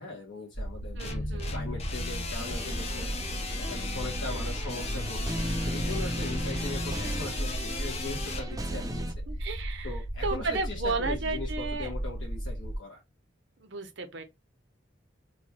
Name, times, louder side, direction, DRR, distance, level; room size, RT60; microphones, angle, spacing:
voice 1, 0.0-3.1 3.6-9.1 9.4-9.5 9.8-13.0, left 2 dB, 80° left, 1.1 m, -40 dB
sound 1, 0.5-12.8, right 1 dB, 55° left, 1.4 m, -35 dB
sound 2, 1.0-8.5, left 4 dB, 35° left, 0.6 m, -37 dB
voice 2, 1.0-1.5 9.3-10.0 10.2-11.9 13.6-14.2, right 3 dB, 65° right, 0.8 m, -33 dB
sound 3, 2.4-9.1, equal, 20° right, 0.5 m, -37 dB
3.1 x 2.3 x 4.0 m
head